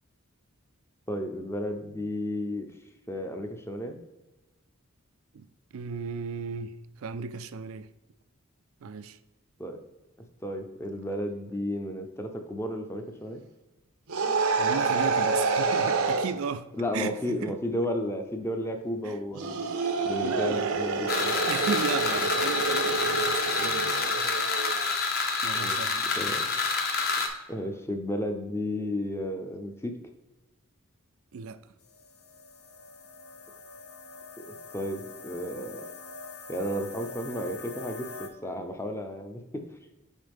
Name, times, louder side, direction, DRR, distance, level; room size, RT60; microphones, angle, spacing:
voice 1, 1.1-2.7 3.1-4.0 9.6-9.8 10.4-13.4 16.8-19.7 20.0-21.4 22.1-22.3 25.5-25.8 26.1-26.5 27.5-30.0 34.7-35.9 36.5-39.7, left 1 dB, 10° left, 0.5 m, -33 dB
voice 2, 5.7-7.9 8.8-9.2 14.6-16.7 16.9-17.5 19.0-19.2 20.2-20.8 21.5-24.2 25.4-26.2 31.3-31.6, right 5 dB, 70° right, 0.4 m, -35 dB
sound 1, 14.1-16.3 19.3-24.9, right 4 dB, 90° right, 0.8 m, -28 dB
sound 2, 21.1-27.3, left 4 dB, 45° left, 0.9 m, -28 dB
sound 3, 31.8-38.3, left 3 dB, 80° left, 0.8 m, -44 dB
7.3 x 4.6 x 3.4 m
head